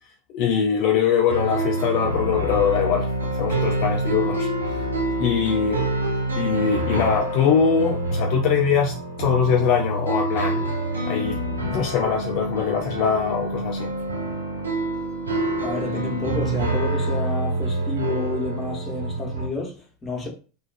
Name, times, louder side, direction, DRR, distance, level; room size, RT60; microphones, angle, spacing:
voice 1, 0.3-4.8 5.2-5.9 6.4-10.7 11.0-13.9, left 7 dB, 50° left, 0.3 m, -23 dB
sound 1, 1.3-19.5, right 2 dB, 85° right, 0.4 m, -26 dB
voice 2, 15.6-20.3, left 2 dB, 20° left, 0.9 m, -30 dB
2.4 x 2.3 x 2.2 m
figure-of-eight pair, 85°, 0 cm